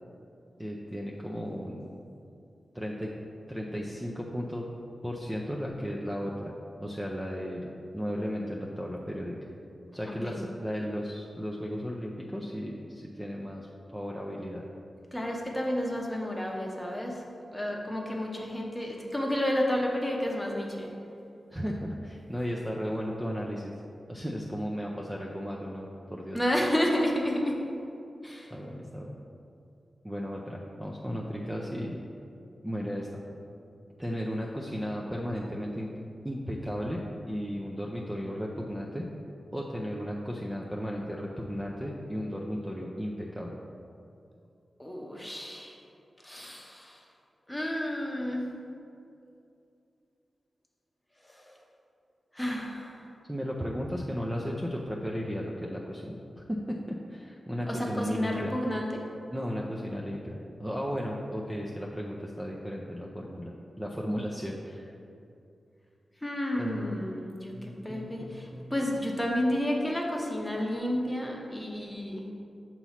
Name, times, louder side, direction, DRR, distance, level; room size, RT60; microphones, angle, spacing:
voice 1, 0.6-1.9 2.7-3.1 3.5-4.6 5.0-9.4 9.9-14.7 21.5-23.7 24.1-26.4 28.5-29.2 30.0-32.0 32.6-33.1 34.0-35.9 36.2-39.1 39.5-43.6 53.3-58.5 59.3-64.9 66.5-67.0 67.5-68.7, equal, 10° right, -3 dB, 0.4 m, -35 dB
voice 2, 10.0-10.4 15.1-17.2 17.5-20.9 26.3-27.6 28.2-28.5 44.8-45.8 46.2-47.0 47.5-48.5 51.3-51.5 52.3-53.0 57.7-59.0 66.2-72.3, left 1 dB, 10° left, -1 dB, 0.8 m, -31 dB
6.9 x 3.0 x 5.6 m, 2.6 s
wide cardioid pair, 115°, 0 cm